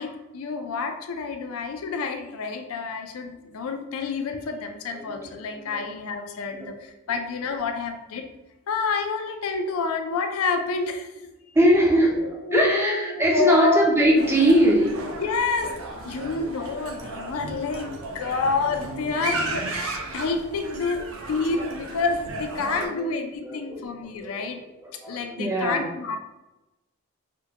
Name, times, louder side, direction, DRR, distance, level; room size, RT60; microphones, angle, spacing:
voice 1, 0.0-8.3 8.7-11.3 12.4-13.8 15.2-15.7 16.0-21.0 21.3-24.6 25.1-26.2, left 4 dB, 80° left, 6 dB, 0.4 m, -28 dB
voice 2, 4.9-5.8 6.5-6.7 7.1-7.2 11.5-15.0 21.0-21.7 22.6-23.1 23.4-24.3 24.8-25.8, equal, 10° right, -1 dB, 0.4 m, -22 dB
sound 1, 14.2-22.9, right 2 dB, 70° right, 0.4 m, -34 dB
3.4 x 2.1 x 2.8 m, 1.0 s
head